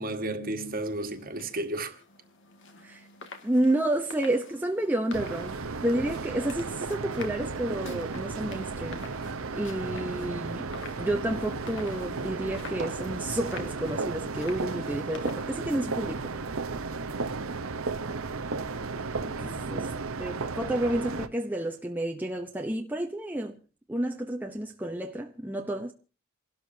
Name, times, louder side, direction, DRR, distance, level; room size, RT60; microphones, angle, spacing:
voice 1, 0.0-2.0 19.4-19.7, right 1 dB, 40° right, 1.7 m, -33 dB
sound 1, 0.6-16.6, left 3 dB, 60° left, 2.1 m, -49 dB
voice 2, 3.4-5.5 5.8-9.1 9.5-10.7 11.0-16.3 19.2-19.9 20.2-23.6 23.9-25.9, right 1 dB, 10° right, 0.8 m, -30 dB
sound 2, 5.1-21.3, right 4 dB, 75° right, 0.9 m, -34 dB
28.5 x 12.5 x 2.8 m
head